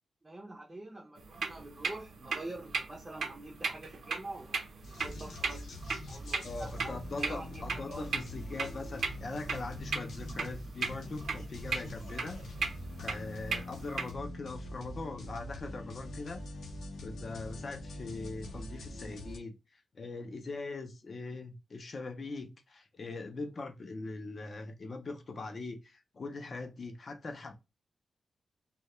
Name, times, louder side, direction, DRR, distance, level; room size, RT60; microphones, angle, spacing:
voice 1, 0.2-4.6 5.0-5.7 6.1-8.1, right 2 dB, 20° right, 0.4 m, -45 dB
sound 1, 1.2-14.1, right 4 dB, 70° right, 0.5 m, -38 dB
sound 2, 4.8-19.4, left 1 dB, 90° left, 0.6 m, -43 dB
voice 2, 6.4-12.4 13.0-16.4 17.0-19.5 19.9-27.5, left 3 dB, 40° left, 0.4 m, -41 dB
2.2 x 2.1 x 2.9 m
wide cardioid pair, 165°, 0 cm